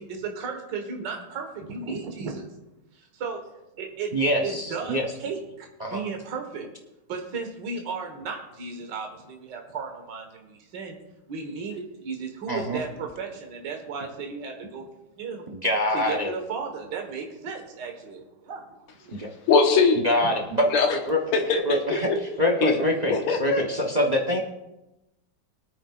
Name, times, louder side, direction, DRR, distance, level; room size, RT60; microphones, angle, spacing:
voice 1, 0.0-2.5 2.9-3.4 3.8-4.1 4.4-6.7 7.1-11.0 11.3-14.9 15.2-15.5 15.9-19.2 20.2-20.3 23.0-23.2, right 5 dB, 55° right, 2 dB, 2.0 m, -35 dB
voice 2, 4.1-5.1 5.8-6.0 12.5-12.8 15.5-16.3 19.1-19.3 20.0-21.2 21.6-22.1 22.4-24.4, equal, 35° right, 2 dB, 0.6 m, -25 dB
voice 3, 19.5-20.0 20.7-21.0 21.3-22.0 22.6-22.8 23.1-23.6, left 4 dB, 85° left, 3 dB, 2.2 m, -21 dB
23.5 x 9.0 x 2.5 m, 0.95 s
omnidirectional pair, 2.4 m